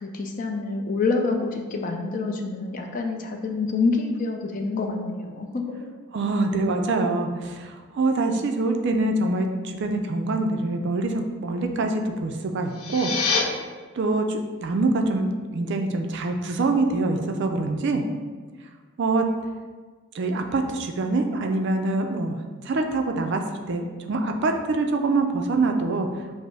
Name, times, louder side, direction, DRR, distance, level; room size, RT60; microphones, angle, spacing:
voice 1, 0.0-5.8, left 3 dB, 40° left, 3 dB, 0.4 m, -27 dB
voice 2, 6.1-13.1 13.9-18.0 19.0-19.2 20.1-22.4 22.6-23.4 23.7-26.1, right 2 dB, 50° right, 4 dB, 0.4 m, -25 dB
sound 1, 12.6-13.4, left 5 dB, 80° left, 0.6 m, -25 dB
5.1 x 2.0 x 4.7 m, 1.5 s
head